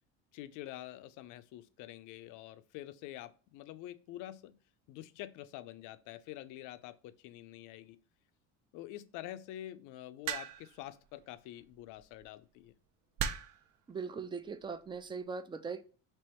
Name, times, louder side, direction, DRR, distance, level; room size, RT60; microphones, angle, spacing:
voice 1, 0.3-4.6 4.9-8.0 8.7-12.7, left 14 dB, 65° left, 0.5 m, -47 dB
sound 1, 10.3-10.8 12.0-12.2 13.2-13.7 14.6-14.9, right 8 dB, 60° right, 0.6 m, -37 dB
voice 2, 13.9-15.8, right 5 dB, 15° right, 0.3 m, -40 dB
3.5 x 3.0 x 4.2 m
cardioid pair, 115°, 34 cm